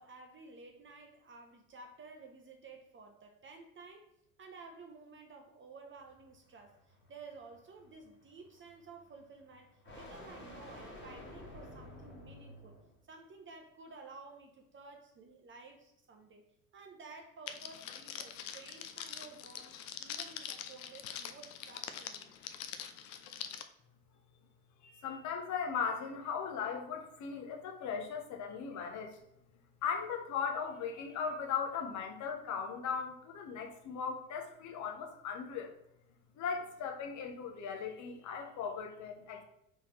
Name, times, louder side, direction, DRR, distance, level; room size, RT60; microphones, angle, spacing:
voice 1, 0.0-4.1 4.4-12.8 13.1-16.5 16.7-22.3, right 4 dB, 30° right, 3 dB, 0.7 m, -53 dB
sound 1, 6.0-13.0, left 1 dB, 25° left, 1.5 m, -52 dB
Crackle, 17.5-23.6, left 9 dB, 75° left, 0.6 m, -44 dB
voice 2, 24.8-29.2 29.8-35.8 36.3-39.4, left 6 dB, 40° left, 3 dB, 1.0 m, -38 dB
4.3 x 3.7 x 3.0 m, 0.78 s
hypercardioid pair, 75°, 42 cm